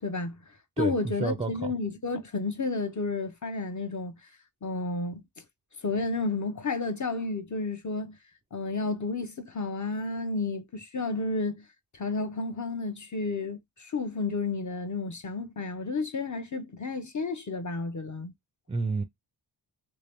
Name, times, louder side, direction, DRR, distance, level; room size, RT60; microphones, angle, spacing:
voice 1, 0.0-4.3 4.6-5.2 5.8-8.2 8.5-11.6 11.9-18.3, left 3 dB, 40° left, 0.6 m, -31 dB
voice 2, 0.8-1.7 18.7-19.0, right 3 dB, 15° right, 0.3 m, -30 dB
3.3 x 2.7 x 3.4 m
wide cardioid pair, 95°, 48 cm